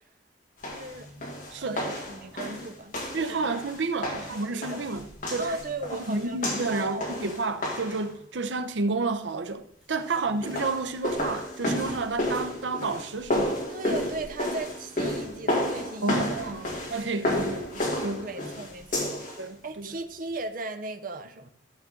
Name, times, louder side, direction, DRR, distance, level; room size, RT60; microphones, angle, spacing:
sound 1, 0.6-8.1 10.3-19.4, left 1 dB, 50° left, 2.6 m, -31 dB
voice 1, 0.7-1.1 1.6-3.5 4.1-4.8 5.4-6.4 6.7-7.0 10.1-10.2 13.7-16.3 17.0-17.1 18.2-19.3 19.6-21.5, right 2 dB, 50° right, 0.8 m, -37 dB
voice 2, 3.1-5.6 6.1-13.6 16.0-18.3 19.4-20.0, right 3 dB, 80° right, 0.7 m, -31 dB
13.5 x 7.4 x 3.8 m
head